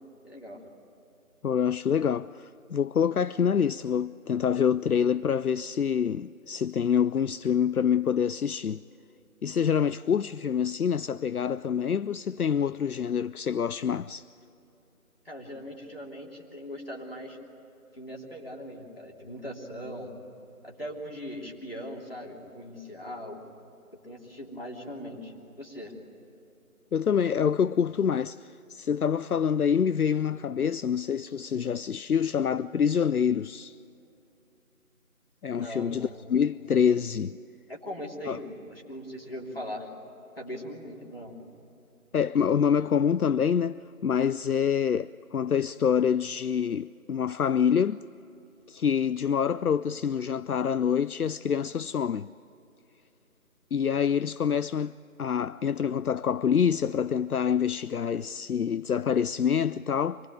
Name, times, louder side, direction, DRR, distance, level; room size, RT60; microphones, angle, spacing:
voice 1, 0.2-0.7 15.2-17.4 17.9-20.2 20.6-23.4 24.0-25.9 35.5-36.2 37.7-39.9 40.4-41.4, equal, 40° left, 3.2 m, -40 dB
voice 2, 1.4-8.8 9.4-14.3 26.9-33.8 35.4-37.4 38.3-38.4 42.1-48.0 48.7-52.3 53.7-54.9 55.2-60.2, left 7 dB, 75° left, 0.5 m, -26 dB
25.0 x 20.0 x 9.1 m
figure-of-eight pair, 180°, 44 cm